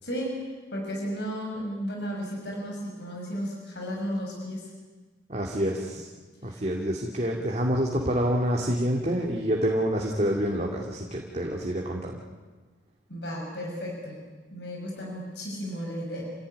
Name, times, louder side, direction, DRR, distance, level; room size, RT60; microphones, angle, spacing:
voice 1, 0.0-4.7 6.4-6.6 13.1-14.2 14.5-16.2, equal, 65° left, -1 dB, 6.0 m, -34 dB
voice 2, 5.3-6.1 6.4-12.2, equal, 40° right, 0 dB, 2.6 m, -27 dB
28.5 x 16.5 x 9.7 m, 1.4 s
head